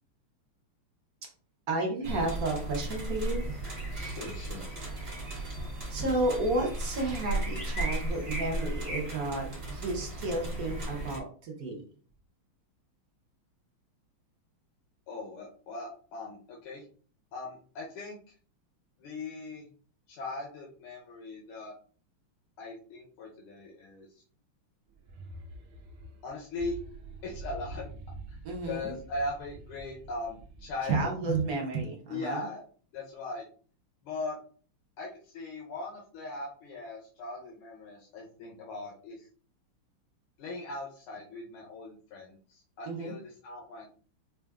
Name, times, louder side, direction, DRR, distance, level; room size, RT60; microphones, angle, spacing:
voice 1, 1.7-3.4 5.9-11.8 28.4-29.0 30.9-32.4 42.8-43.1, right 2 dB, 60° right, 0 dB, 1.0 m, -32 dB
sound 1, 2.0-11.2, right 1 dB, 30° right, 0.7 m, -35 dB
voice 2, 3.9-4.7 15.1-16.8 17.3-18.2 19.0-19.7 20.1-21.7 22.6-24.2 26.2-26.8 27.2-27.8 28.3-28.4 28.6-31.1 32.1-32.6 32.9-33.4 34.0-34.4 35.0-39.3 40.4-43.9, left 2 dB, 90° left, -3 dB, 1.6 m, -39 dB
sound 2, 24.9-31.3, right 2 dB, 80° right, 1.5 m, -46 dB
5.3 x 2.4 x 2.3 m, 0.43 s
omnidirectional pair, 2.4 m